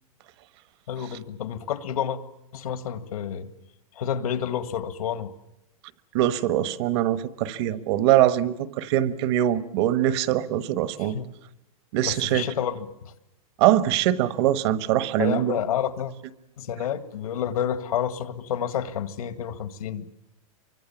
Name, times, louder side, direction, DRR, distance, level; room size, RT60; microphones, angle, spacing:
voice 1, 0.9-2.2 2.5-3.5 4.0-5.3 11.0-11.3 12.1-13.1 15.2-16.1 16.6-20.1, left 9 dB, 85° left, 11 dB, 2.0 m, -29 dB
voice 2, 6.1-11.2 11.9-12.4 13.6-15.6, right 12 dB, 45° right, 14 dB, 1.3 m, -23 dB
27.5 x 24.5 x 7.2 m, 0.87 s
supercardioid pair, 155°, 18 cm